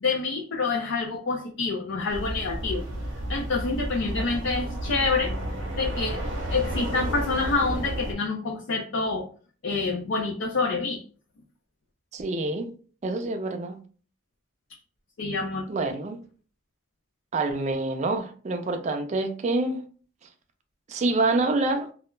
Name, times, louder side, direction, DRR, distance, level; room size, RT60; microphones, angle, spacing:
voice 1, 0.0-2.8 3.3-5.4 5.8-6.2 6.5-9.2 9.6-11.0 15.2-15.6, left 3 dB, 70° left, 0.5 m, -27 dB
sound 1, 2.1-8.2, right 1 dB, 90° right, 0.7 m, -31 dB
voice 2, 12.1-12.7 13.0-13.8 15.7-16.2 17.3-19.8 20.9-21.9, right 2 dB, 35° right, 0.4 m, -27 dB
2.3 x 2.0 x 3.1 m
head